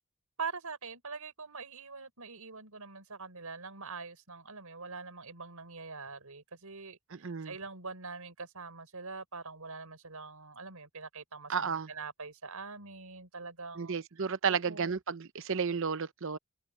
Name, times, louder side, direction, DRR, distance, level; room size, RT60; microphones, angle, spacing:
voice 1, 0.4-15.0, right 4 dB, 85° right, 4.6 m, -44 dB
voice 2, 7.1-7.5 11.5-11.9 13.8-16.4, right 6 dB, 60° right, 0.8 m, -32 dB
head